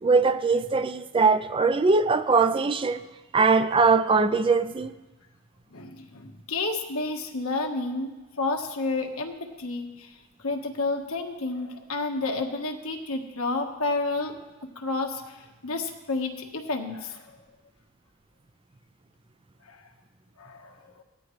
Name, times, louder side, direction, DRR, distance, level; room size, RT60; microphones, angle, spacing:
voice 1, 0.0-3.0 3.3-4.9, right 4 dB, 25° right, 0.4 m, -21 dB
voice 2, 5.7-10.1 10.4-14.3 14.7-17.3 19.7-19.8 20.4-20.8, left 3 dB, 70° left, 1.4 m, -30 dB
17.5 x 13.5 x 3.2 m
head